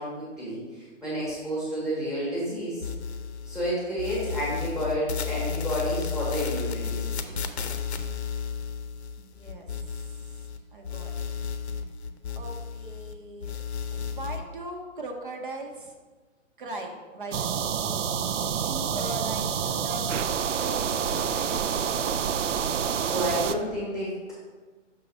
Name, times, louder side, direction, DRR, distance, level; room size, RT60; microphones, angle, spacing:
voice 1, 0.0-2.9 3.5-7.4 22.9-24.3, equal, ahead, -7 dB, 1.1 m, -31 dB
sound 1, 2.8-3.7 4.0-10.6 10.8-13.1 13.4-14.4, left 6 dB, 60° left, 0.7 m, -33 dB
voice 2, 9.2-9.7 10.0-10.5 10.7-11.4 12.3-13.5 13.9-16.0 16.6-20.2 20.5-22.9, right 2 dB, 45° right, 3 dB, 0.8 m, -40 dB
sound 2, 17.3-23.5, right 7 dB, 75° right, 0.6 m, -28 dB
6.2 x 3.9 x 6.1 m, 1.3 s
hypercardioid pair, 170°, 37 cm